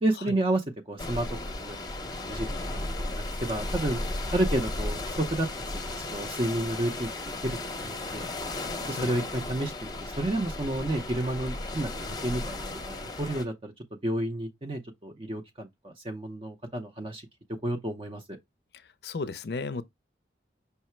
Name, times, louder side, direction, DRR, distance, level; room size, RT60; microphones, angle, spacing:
voice 1, 0.0-4.0 4.3-5.5 6.1-7.1 7.4-8.3 8.9-13.7 14.0-17.3 17.6-18.4, right 1 dB, 30° right, 0.5 m, -31 dB
sound 1, 1.0-13.4, left 2 dB, 20° left, 0.7 m, -35 dB
voice 2, 19.0-19.8, left 4 dB, 55° left, 0.4 m, -33 dB
5.6 x 2.0 x 4.3 m
head